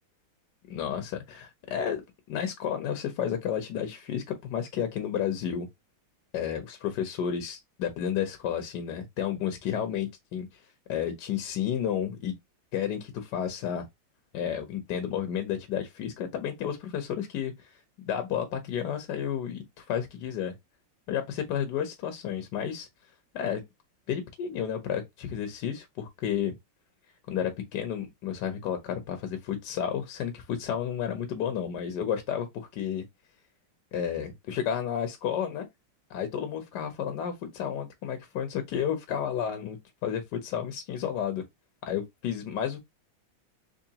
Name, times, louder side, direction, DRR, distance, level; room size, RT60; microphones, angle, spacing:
voice 1, 0.7-2.0 2.3-5.7 6.3-10.5 10.9-12.3 12.7-13.8 14.3-20.5 21.1-22.9 23.3-23.6 24.1-26.5 27.3-33.0 33.9-35.7 36.1-41.4 41.8-42.8, left 9 dB, 70° left, 1.1 m, -31 dB
3.7 x 3.0 x 2.7 m
omnidirectional pair, 2.3 m